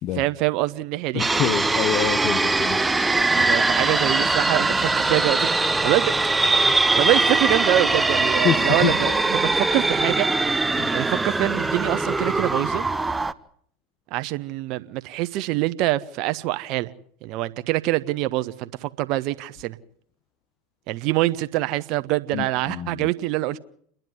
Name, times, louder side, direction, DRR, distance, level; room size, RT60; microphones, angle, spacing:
voice 1, 0.1-1.2 3.4-5.5 5.8-6.1 7.0-10.3 10.9-12.8 14.1-16.9 17.2-19.8 20.9-23.6, right 16 dB, 55° right, 1.0 m, -25 dB
voice 2, 1.1-2.8 8.4-9.1 10.8-10.9 22.3-23.1, left 10 dB, 50° left, 1.1 m, -26 dB
sound 1, 1.2-13.3, right 3 dB, 10° right, 1.0 m, -21 dB
28.5 x 10.5 x 9.5 m
hypercardioid pair, 85°, 0 cm